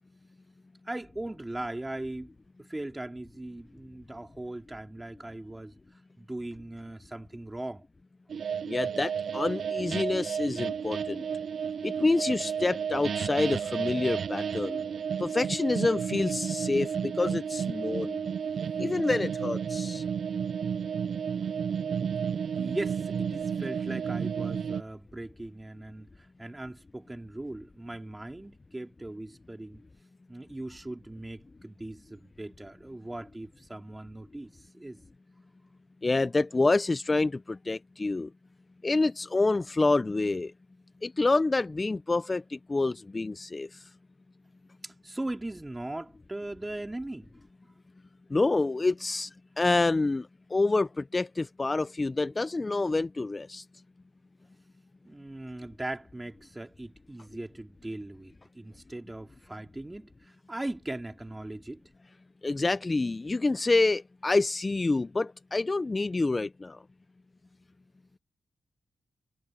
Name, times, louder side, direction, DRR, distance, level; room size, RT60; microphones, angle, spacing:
voice 1, 0.8-2.3 2.7-5.7 6.2-7.8 21.4-21.5 22.6-29.8 30.3-35.0 44.8-47.3 55.0-61.8, right 1 dB, 15° right, 3.7 m, -39 dB
sound 1, 8.3-24.8, right 7 dB, 70° right, 0.4 m, -32 dB
voice 2, 8.7-11.2 11.8-14.8 15.2-18.2 18.8-20.0 36.0-38.3 38.8-40.5 41.0-43.8 48.3-49.3 49.6-53.6 62.4-66.8, left 3 dB, 30° left, 0.5 m, -27 dB
cardioid pair, 75°, 0 cm